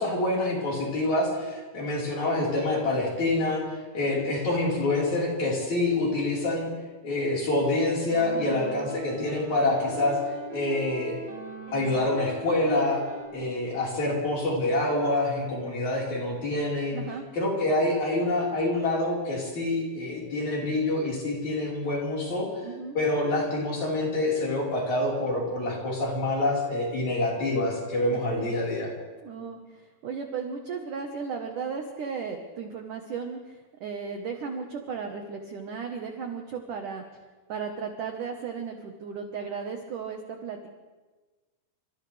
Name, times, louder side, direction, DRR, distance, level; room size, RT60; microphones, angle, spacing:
voice 1, 0.0-3.6 3.9-6.7 7.0-10.2 10.5-11.2 11.7-13.0 13.3-17.0 17.3-22.5 22.9-28.9, left 2 dB, 40° left, -4 dB, 5.7 m, -26 dB
sound 1, 8.1-13.3, right 3 dB, 25° right, 5.4 m, -40 dB
voice 2, 16.9-17.2 22.6-23.0 28.0-28.5 29.2-37.0 37.5-40.7, right 5 dB, 65° right, 3 dB, 2.0 m, -35 dB
29.0 x 26.5 x 3.5 m, 1.3 s
omnidirectional pair, 5.6 m